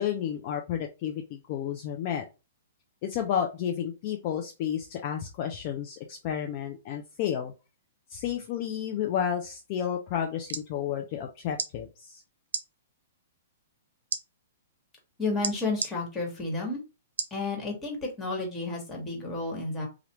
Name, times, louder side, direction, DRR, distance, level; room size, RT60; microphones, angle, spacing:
voice 1, 0.0-2.2 3.0-7.5 8.1-12.2, left 9 dB, 45° left, 3 dB, 0.5 m, -31 dB
sound 1, 10.2-10.7 11.5-11.7 12.5-12.6 14.1-14.2 15.4-15.9 17.2-17.4 18.0-18.1, right 5 dB, 85° right, 0.5 m, -31 dB
voice 2, 15.2-16.8 17.3-19.9, left 3 dB, 15° left, -1 dB, 1.4 m, -31 dB
3.3 x 2.4 x 3.0 m, 0.28 s
hypercardioid pair, 135°, 0 cm